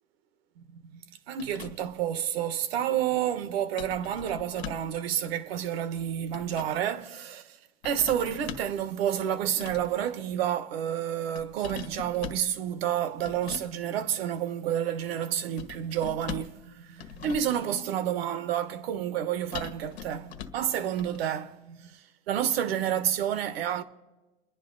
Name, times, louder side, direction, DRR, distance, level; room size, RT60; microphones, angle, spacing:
voice 1, 0.6-7.6 7.8-23.8, right 10 dB, 65° right, 1.2 m, -30 dB
sound 1, 1.4-2.0 3.8-5.0 6.0-6.8 7.8-8.8 9.5-10.0 11.4-12.5 13.2-13.7 15.6-16.6 17.0-17.6 19.5-20.7 21.0-21.2, left 9 dB, 75° left, 1.5 m, -42 dB
29.0 x 10.5 x 3.9 m
supercardioid pair, 135°, 32 cm